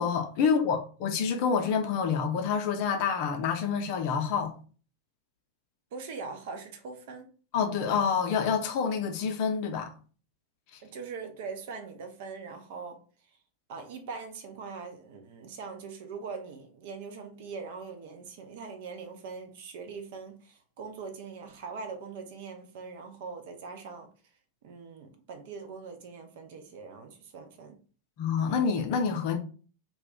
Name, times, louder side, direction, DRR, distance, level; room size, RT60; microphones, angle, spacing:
voice 1, 0.0-4.5 7.5-9.9 28.2-29.4, left 6 dB, 45° left, 0.6 m, -27 dB
voice 2, 5.9-7.3 10.8-13.0 13.7-24.1 24.6-27.8, right 5 dB, 50° right, 0.6 m, -42 dB
2.3 x 2.2 x 3.5 m
figure-of-eight pair, 90°, 0 cm